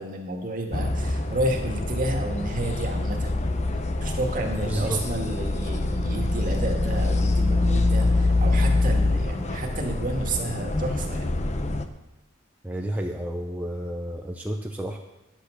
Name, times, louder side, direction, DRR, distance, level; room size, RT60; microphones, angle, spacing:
voice 1, 0.0-3.5 4.0-11.3, right 1 dB, 40° right, 1 dB, 2.0 m, -31 dB
sound 1, 0.7-11.8, left 2 dB, 35° left, 0.7 m, -25 dB
voice 2, 4.6-5.0 12.6-15.0, right 1 dB, 10° right, 1 dB, 0.6 m, -30 dB
10.5 x 8.7 x 6.6 m, 0.98 s
head